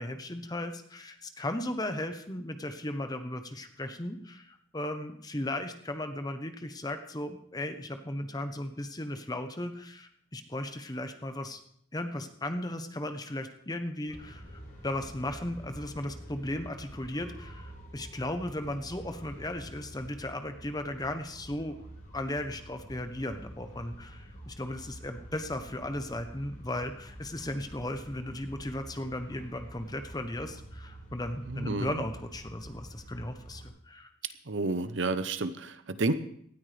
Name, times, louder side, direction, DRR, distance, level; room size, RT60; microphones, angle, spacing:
voice 1, 0.0-11.6 11.9-21.8 22.1-34.1, left 1 dB, 20° left, 7 dB, 0.9 m, -36 dB
sound 1, 14.1-33.7, right 1 dB, 40° left, 4.8 m, -47 dB
voice 2, 31.5-31.9 34.5-36.1, right 3 dB, 65° right, 11 dB, 0.8 m, -30 dB
18.5 x 13.0 x 3.4 m, 0.65 s
head